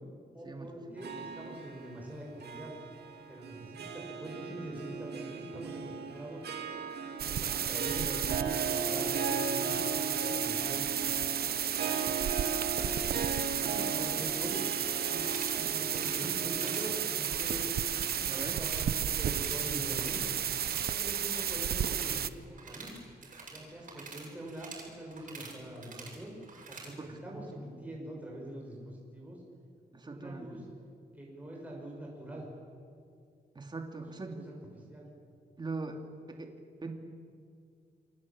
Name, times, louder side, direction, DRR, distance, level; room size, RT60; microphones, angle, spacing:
voice 1, 0.3-2.7 3.3-6.5 7.2-10.8 11.2-11.6 12.0-14.6 15.7-17.8 18.1-20.3 20.7-23.0 23.5-26.3 26.7-29.4 30.0-30.7 31.1-32.4 34.2-35.1, right 1 dB, 10° right, -3 dB, 6.2 m, -44 dB
Harp, 1.0-19.4, right 5 dB, 90° right, 2.5 m, -38 dB
sound 1, 7.2-22.3, right 9 dB, 75° right, 0.8 m, -33 dB
voice 2, 13.6-14.5 15.1-15.8 16.2-16.6 18.3-18.6 27.0-27.4 29.9-30.6 33.5-34.5 35.6-36.0 36.3-36.5 36.8-36.9, right 3 dB, 25° right, 4 dB, 2.6 m, -42 dB
sound 2, 15.2-15.6 15.9-16.2 16.5-16.9 17.2-18.2 18.5-18.9 19.2-20.3 20.5-26.9, right 4 dB, 55° right, 7.0 m, -47 dB
28.0 x 23.5 x 8.7 m, 2.3 s
wide cardioid pair, 165°, 16 cm